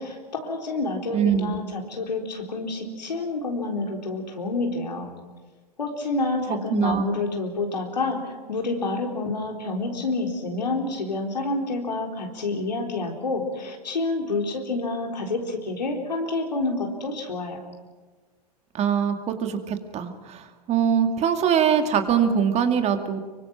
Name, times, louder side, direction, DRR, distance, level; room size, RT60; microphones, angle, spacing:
voice 1, 0.0-5.1 5.8-17.6, left 2 dB, 90° left, 2 dB, 4.0 m, -28 dB
voice 2, 1.1-1.6 6.7-7.1 18.7-23.2, right 8 dB, 30° right, 6 dB, 2.3 m, -23 dB
26.0 x 23.5 x 6.0 m, 1.3 s
hypercardioid pair, 105°, 21 cm